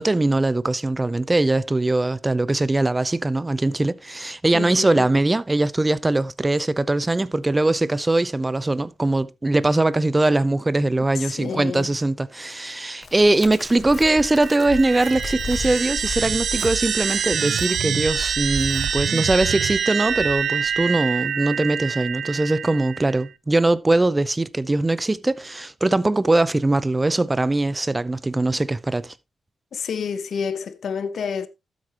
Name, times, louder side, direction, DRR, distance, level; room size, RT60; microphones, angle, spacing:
voice 1, 0.0-29.1, right 2 dB, 15° right, 0.6 m, -21 dB
voice 2, 4.5-5.1 11.2-11.9 29.7-31.5, left 6 dB, 65° left, 0.9 m, -29 dB
Chirp tweet, 13.0-19.2, left 5 dB, 45° left, 0.5 m, -36 dB
sound 1, 13.9-23.2, right 7 dB, 65° right, 0.5 m, -26 dB
12.5 x 8.1 x 2.9 m
wide cardioid pair, 125°, 0 cm